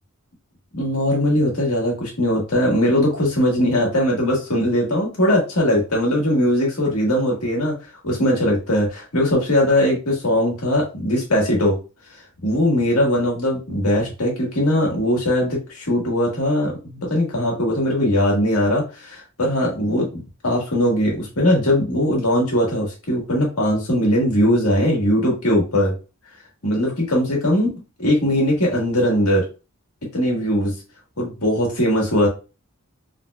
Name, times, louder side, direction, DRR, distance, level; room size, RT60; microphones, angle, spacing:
voice 1, 0.7-7.8 8.0-11.8 12.4-25.9 26.6-29.4 30.1-30.8 31.2-32.3, left 1 dB, 90° left, -1 dB, 1.6 m, -20 dB
3.7 x 3.2 x 2.3 m, 0.31 s
head